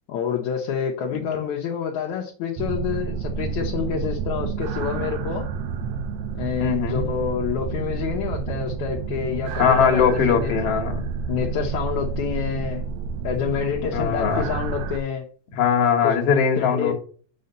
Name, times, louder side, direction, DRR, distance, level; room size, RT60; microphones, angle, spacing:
voice 1, 0.1-5.5 6.3-10.5 11.3-12.9 13.2-15.3 16.0-16.1 16.6-16.9, left 8 dB, 70° left, 0 dB, 2.2 m, -28 dB
sound 1, 2.6-15.0, right 6 dB, 75° right, 1.8 m, -29 dB
voice 2, 6.6-7.1 9.6-11.0 13.9-14.5 15.5-16.9, left 6 dB, 55° left, 2 dB, 2.3 m, -20 dB
6.6 x 5.6 x 5.3 m, 0.41 s
omnidirectional pair, 3.7 m